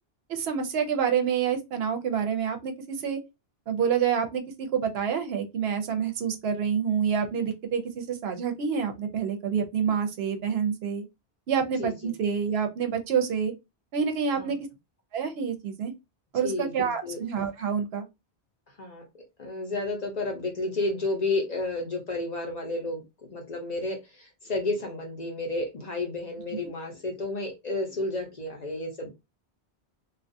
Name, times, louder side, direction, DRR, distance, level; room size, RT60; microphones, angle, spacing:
voice 1, 0.3-3.2 3.7-11.0 11.5-13.5 13.9-14.7 15.1-15.9 16.3-18.1, right 7 dB, 75° right, 0.8 m, -27 dB
voice 2, 11.8-12.1 14.3-14.5 16.4-17.2 18.8-19.0 19.4-23.0 23.3-29.1, left 2 dB, 45° left, 0.7 m, -31 dB
2.4 x 2.3 x 2.5 m
omnidirectional pair, 1.1 m